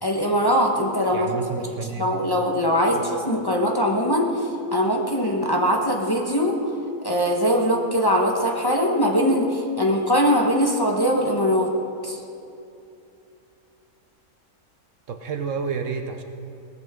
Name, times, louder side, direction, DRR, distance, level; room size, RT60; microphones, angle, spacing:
voice 1, 0.0-1.3 2.0-4.3 4.7-6.6 7.0-11.7 12.0-12.2, equal, 15° left, 0 dB, 1.1 m, -21 dB
voice 2, 1.1-2.2 2.9-3.0 15.1-16.2, right 5 dB, 60° right, 5 dB, 1.1 m, -30 dB
18.5 x 14.0 x 3.7 m, 2.7 s
omnidirectional pair, 1.6 m